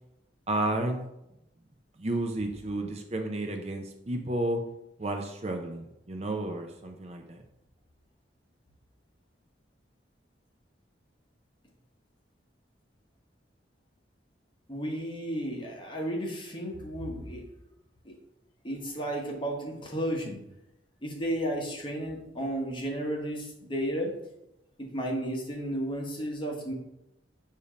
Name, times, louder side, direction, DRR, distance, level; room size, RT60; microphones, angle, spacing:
voice 1, 0.5-1.0 2.0-4.6 5.0-7.4, right 1 dB, 35° right, 4 dB, 0.5 m, -32 dB
voice 2, 14.7-17.4 18.0-18.1 18.6-20.4 21.0-24.1 24.9-26.7, equal, 25° left, -1 dB, 1.1 m, -33 dB
6.8 x 2.8 x 5.0 m, 0.87 s
head